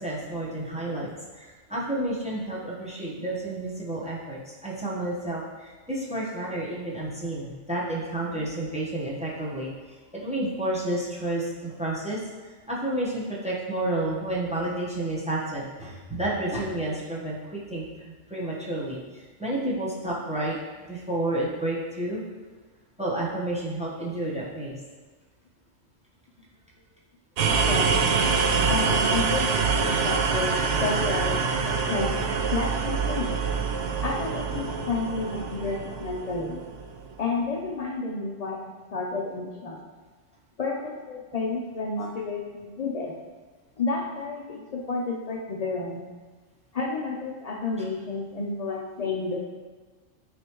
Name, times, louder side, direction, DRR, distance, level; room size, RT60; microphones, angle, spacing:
voice 1, 0.0-9.7 10.1-12.2 12.7-20.6 20.9-22.2 23.0-24.8, right 1 dB, 5° right, -5 dB, 1.0 m, -30 dB
sound 1, 27.4-37.1, right 5 dB, 70° right, 0.9 m, -25 dB
voice 2, 27.6-28.0 28.7-30.5 30.8-32.1 32.5-33.4 34.0-36.6 37.2-39.8 40.6-43.1 43.8-46.0 46.7-49.4, left 3 dB, 45° left, -3 dB, 0.5 m, -31 dB
9.7 x 3.3 x 3.0 m, 1.4 s
omnidirectional pair, 1.3 m